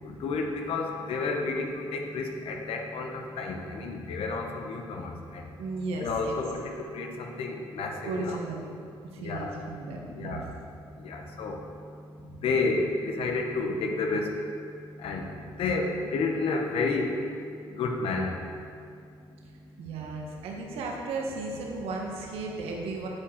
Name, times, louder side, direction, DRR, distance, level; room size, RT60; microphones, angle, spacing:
voice 1, 0.0-5.5 6.0-8.4 9.2-9.5 10.2-10.4 11.0-11.6 12.4-14.4 15.0-17.2 17.7-18.4, left 3 dB, 70° left, 3 dB, 1.2 m, -31 dB
voice 2, 5.6-6.4 8.0-8.7 9.0-10.4 19.8-23.1, right 3 dB, 80° right, 0 dB, 1.5 m, -35 dB
9.6 x 4.8 x 7.3 m, 2.4 s
supercardioid pair, 75°, 10 cm